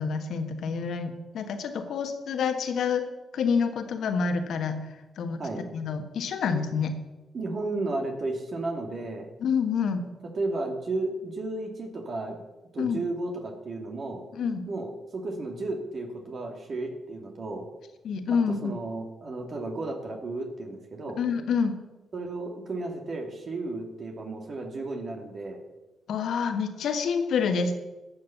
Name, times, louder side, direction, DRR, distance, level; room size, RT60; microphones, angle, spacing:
voice 1, 0.0-4.9 5.2-5.4 5.7-7.0 9.4-10.0 12.8-13.0 14.3-14.6 18.0-18.7 21.2-21.8 26.1-27.7, left 6 dB, 70° left, 7 dB, 1.6 m, -27 dB
voice 2, 7.3-9.3 10.3-12.4 12.7-14.2 14.7-17.7 18.6-21.2 22.1-25.6, right 2 dB, 50° right, 2 dB, 2.5 m, -33 dB
12.5 x 7.5 x 7.2 m, 1.1 s
supercardioid pair, 55°, 0 cm